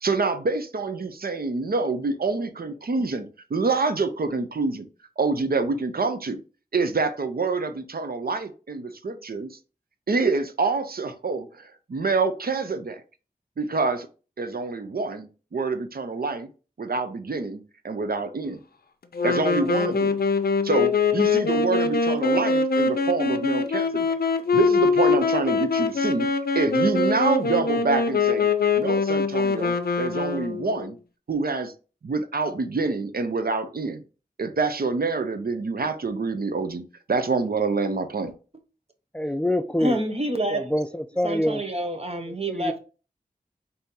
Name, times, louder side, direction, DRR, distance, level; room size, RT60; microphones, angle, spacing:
voice 1, 0.0-4.9 5.2-6.4 6.7-9.6 10.1-13.0 13.6-14.1 14.4-16.5 16.8-18.6 19.2-20.2 20.6-24.2 24.5-26.3 26.5-28.5 28.8-31.0 31.3-31.7 32.0-34.0 34.4-38.3, right 4 dB, 75° right, 0.6 m, -26 dB
Wind instrument woodwind instrument, 19.1-30.9, left 4 dB, 80° left, 0.5 m, -23 dB
voice 2, 39.1-40.0 40.5-41.6 42.5-42.7, left 1 dB, 5° left, 0.4 m, -25 dB
voice 3, 39.8-40.6 41.2-42.8, right 1 dB, 40° right, 0.8 m, -27 dB
4.1 x 2.8 x 3.6 m
wide cardioid pair, 60°, 16 cm